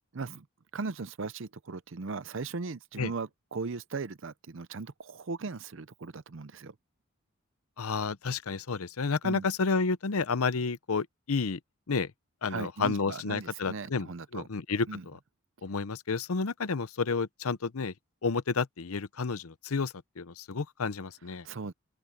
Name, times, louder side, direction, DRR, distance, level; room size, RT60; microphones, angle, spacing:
voice 1, 0.1-0.5 0.7-6.8 9.2-9.5 12.5-14.5 14.9-15.0 21.4-21.7, right 4 dB, 60° right, 0.6 m, -38 dB
voice 2, 7.8-11.6 11.9-12.1 12.4-14.1 14.3-14.9 15.6-17.9 18.2-21.5, left 4 dB, 80° left, 0.7 m, -30 dB
open air
head